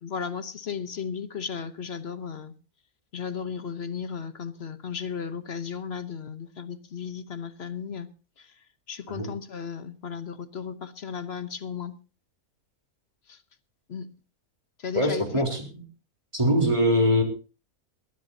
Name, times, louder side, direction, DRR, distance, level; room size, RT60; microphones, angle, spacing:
voice 1, 0.0-2.5 3.1-8.1 8.4-8.5 8.9-11.9 13.3-13.4 13.9-14.1 14.8-15.5, left 6 dB, 50° left, 1.1 m, -35 dB
voice 2, 14.9-15.8 16.3-17.2, equal, 20° right, 3.7 m, -23 dB
21.0 x 14.0 x 2.8 m
omnidirectional pair, 1.6 m